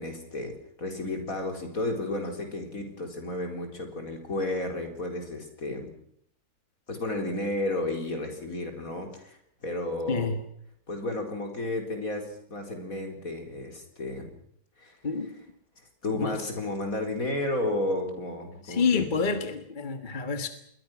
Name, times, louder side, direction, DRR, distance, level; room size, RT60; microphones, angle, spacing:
voice 1, 0.0-5.9 6.9-10.3 10.9-14.3 14.8-15.0 16.0-19.4, left 2 dB, 60° left, 4 dB, 4.6 m, -32 dB
voice 2, 10.1-10.4 15.0-15.4 16.1-16.4 18.6-20.5, left 5 dB, 30° left, 8 dB, 1.6 m, -28 dB
27.5 x 21.5 x 6.2 m, 0.69 s
omnidirectional pair, 1.7 m